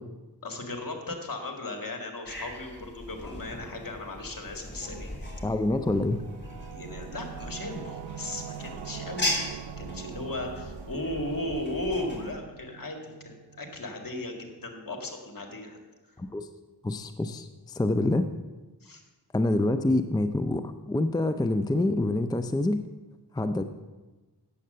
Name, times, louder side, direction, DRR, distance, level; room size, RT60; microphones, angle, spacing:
voice 1, 0.4-5.1 6.7-15.8 16.1-16.2 18.8-19.0, left 2 dB, 55° left, 3 dB, 2.0 m, -36 dB
sound 1, 2.2-12.3, left 1 dB, 25° left, 3.4 m, -38 dB
voice 2, 5.4-6.2 16.2-16.5 16.8-18.3 19.3-22.8 23.3-23.6, left 2 dB, 10° left, 10 dB, 0.5 m, -26 dB
Singing / Musical instrument, 5.4-14.6, right 11 dB, 80° right, 0.5 m, -43 dB
8.6 x 7.5 x 6.7 m, 1.2 s
cardioid pair, 40°, 41 cm